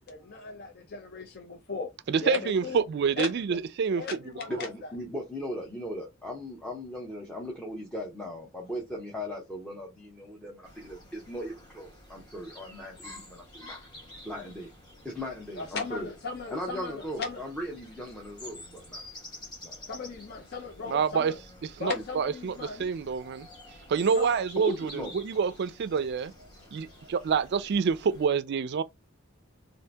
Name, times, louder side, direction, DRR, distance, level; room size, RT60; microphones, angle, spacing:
voice 1, 0.1-0.7 1.1-1.4 1.7-1.9 2.2-2.8 3.2-3.6 4.0-4.7 15.6-17.4 19.9-21.4 21.8-22.9 24.1-24.4, left 4 dB, 50° left, 0.6 m, -36 dB
voice 2, 2.1-4.1 20.9-21.3 21.6-23.5 23.9-26.3 26.7-28.8, right 6 dB, 55° right, 0.3 m, -27 dB
voice 3, 4.5-13.9 14.2-14.7 15.0-16.1 16.5-19.0 19.6-19.8 24.6-25.1 26.9-27.0, equal, 5° left, 0.7 m, -38 dB
sound 1, 10.6-28.3, left 1 dB, 20° left, 1.1 m, -50 dB
2.7 x 2.5 x 3.3 m
head